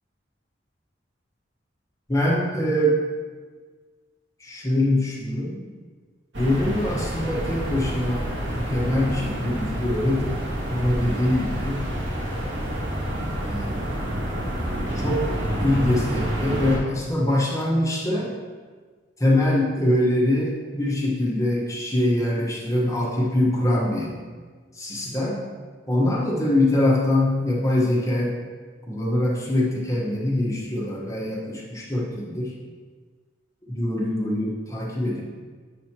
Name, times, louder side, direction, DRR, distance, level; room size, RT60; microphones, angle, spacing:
voice 1, 2.1-3.0 4.4-5.6 6.3-10.4 10.7-11.8 13.5-13.8 14.9-15.3 15.6-18.3 19.2-24.1 24.7-25.4 25.9-28.4 28.9-32.5 33.7-35.2, left 1 dB, 15° left, -4 dB, 1.3 m, -23 dB
sound 1, 6.3-16.8, equal, 85° right, 1.7 m, -28 dB
8.4 x 6.3 x 2.9 m, 1.5 s
head